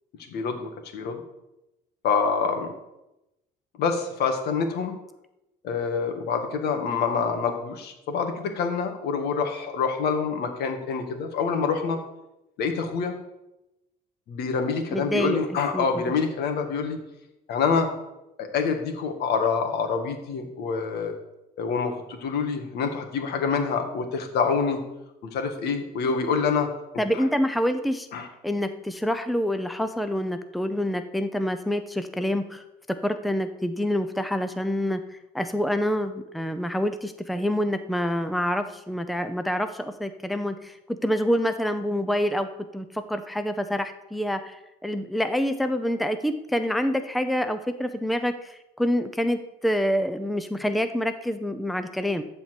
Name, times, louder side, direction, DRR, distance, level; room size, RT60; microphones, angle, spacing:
voice 1, 0.3-1.2 2.0-2.7 3.8-4.9 5.6-12.0 12.6-13.1 14.3-17.0 17.5-17.9 18.4-21.1 21.6-24.8 25.3-26.7 27.1-27.2 28.1-28.3, left 5 dB, 75° left, 5 dB, 1.8 m, -26 dB
voice 2, 14.9-15.4 15.7-16.0 27.0-28.1 28.4-42.5 42.7-52.2, equal, ahead, 9 dB, 0.6 m, -27 dB
12.5 x 4.4 x 7.7 m, 0.93 s
cardioid pair, 110°, 17 cm